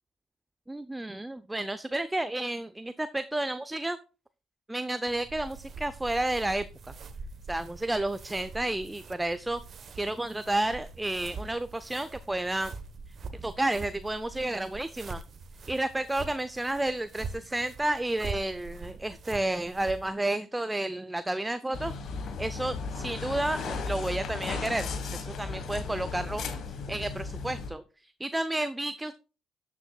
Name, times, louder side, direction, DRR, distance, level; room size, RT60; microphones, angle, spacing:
voice 1, 0.7-4.0 4.7-6.7 7.5-9.6 10.0-12.7 13.3-15.2 15.7-21.9 22.4-26.4 26.9-29.1, right 1 dB, 10° right, 13 dB, 0.5 m, -31 dB
sound 1, 5.1-20.1, right 4 dB, 45° right, 1.1 m, -44 dB
sound 2, 21.7-27.7, left 4 dB, 55° left, 1.4 m, -35 dB
12.0 x 7.4 x 2.3 m, 0.34 s
hypercardioid pair, 55°, 0 cm